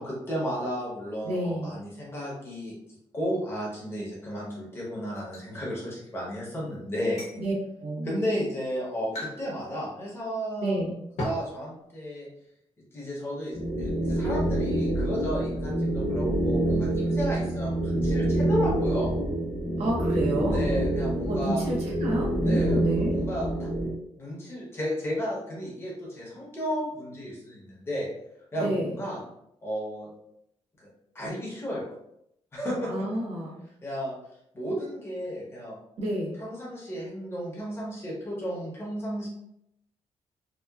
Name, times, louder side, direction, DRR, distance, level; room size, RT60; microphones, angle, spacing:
voice 1, 0.0-2.8 3.1-7.2 8.0-10.8 11.2-12.3 12.9-19.1 20.5-21.7 22.4-23.5 24.2-28.1 28.5-29.2 29.6-30.1 30.8-30.9 31.1-31.8 32.5-32.9 33.8-34.1 34.5-35.8 36.4-39.3, equal, 20° left, -4 dB, 0.9 m, -33 dB
voice 2, 1.2-1.7 7.4-7.5 7.8-8.2 10.6-11.0 19.8-20.6 21.3-23.1 28.6-29.0 32.9-33.6 36.0-36.4, right 1 dB, 70° right, -2 dB, 0.7 m, -29 dB
sound 1, 5.1-5.5 7.0-7.4 8.2-8.3 9.1-9.4 9.7-9.8 11.2-11.5, left 1 dB, 75° left, 0.7 m, -35 dB
sound 2, 13.5-23.9, right 1 dB, 25° right, 1.0 m, -26 dB
2.9 x 2.1 x 2.3 m, 0.77 s
wide cardioid pair, 170°, 11 cm